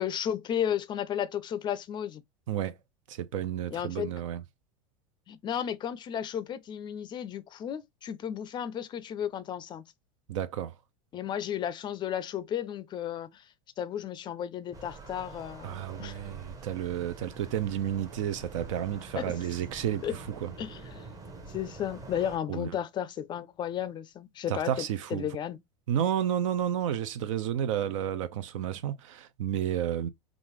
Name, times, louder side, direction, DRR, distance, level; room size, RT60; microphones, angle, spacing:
voice 1, 0.0-2.2 3.7-4.1 5.3-9.8 11.1-13.4 13.8-16.2 19.2-19.3 20.0-20.2 20.6-24.9 25.1-25.6, left 9 dB, 25° left, 0.4 m, -34 dB
voice 2, 2.5-2.8 3.1-4.4 10.3-10.7 15.6-20.5 22.5-22.7 24.5-25.3 25.9-30.1, right 10 dB, 80° right, 0.6 m, -31 dB
sound 1, 14.7-22.4, right 3 dB, 20° right, 0.8 m, -46 dB
3.7 x 2.5 x 3.0 m
supercardioid pair, 125°, 17 cm